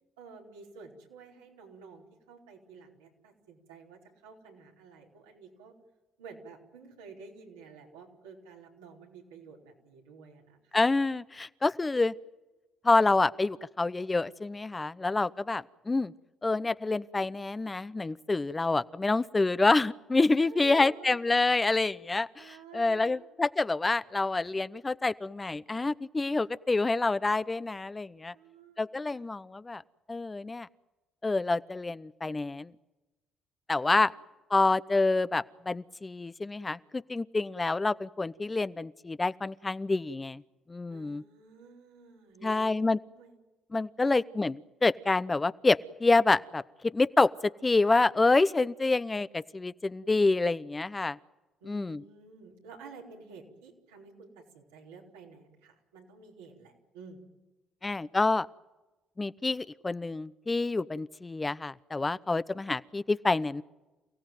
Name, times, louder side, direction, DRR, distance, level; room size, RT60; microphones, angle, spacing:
voice 1, 0.2-5.7 6.2-10.8 20.4-21.2 22.4-23.2 28.3-28.8 29.1-29.3 40.9-43.4 44.0-44.2 51.6-57.2, right 4 dB, 90° right, -1 dB, 4.6 m, -51 dB
voice 2, 10.7-12.1 12.8-16.1 16.4-28.3 28.8-29.8 30.1-30.7 31.2-32.7 33.7-34.1 34.5-40.4 40.7-41.2 42.4-43.0 43.7-47.3 47.6-51.2 51.7-52.0 57.8-58.5 59.2-63.6, left 3 dB, 25° left, 16 dB, 0.8 m, -27 dB
29.0 x 17.0 x 9.3 m, 1.1 s
hypercardioid pair, 55°, 0 cm